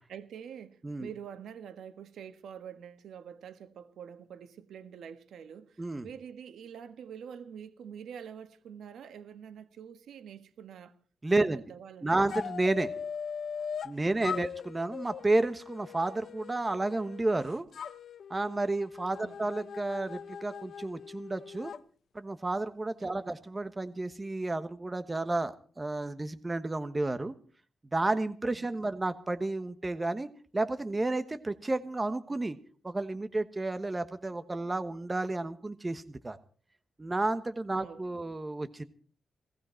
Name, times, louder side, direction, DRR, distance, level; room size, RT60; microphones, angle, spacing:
voice 1, 0.1-10.9 11.4-12.2 14.1-14.5 19.2-19.5 23.0-23.2 28.5-28.7 37.7-38.0, right 8 dB, 80° right, 1.5 m, -46 dB
voice 2, 11.2-11.6 12.0-12.9 13.8-17.7 18.3-21.7 22.1-27.3 27.9-32.6 32.8-36.4 37.0-38.8, right 2 dB, 20° right, 1.2 m, -31 dB
sound 1, 12.3-13.9 14.2-17.3 17.7-21.8, left 7 dB, 60° left, 0.7 m, -40 dB
18.5 x 16.5 x 4.5 m
wide cardioid pair, 125°, 0 cm